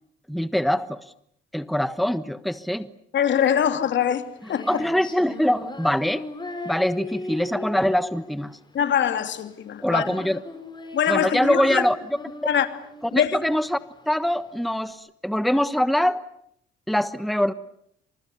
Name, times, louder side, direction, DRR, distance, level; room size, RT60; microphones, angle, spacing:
voice 1, 0.3-1.0 1.5-2.9 4.7-6.3 6.6-8.6 9.8-10.4 11.1-12.0 13.0-13.8 14.1-16.2 16.9-17.5, equal, ahead, 1.3 m, -23 dB
voice 2, 3.1-4.8 8.7-10.0 10.9-11.8 12.4-12.7 13.1-13.5, left 9 dB, 65° left, 3.0 m, -23 dB
Female singing, 3.9-14.9, left 2 dB, 20° left, 6.9 m, -38 dB
29.5 x 27.0 x 6.9 m
cardioid pair, 90°, 20 cm